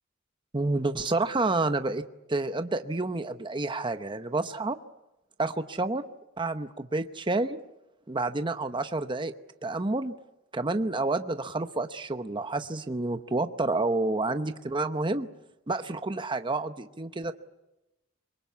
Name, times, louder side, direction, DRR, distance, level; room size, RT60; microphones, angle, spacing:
voice 1, 0.5-2.0 2.3-4.8 5.4-6.0 6.4-7.6 8.1-9.3 9.6-10.1 10.5-15.3 15.7-17.3, right 2 dB, 25° right, 9 dB, 0.8 m, -29 dB
26.0 x 22.5 x 8.4 m, 0.95 s
head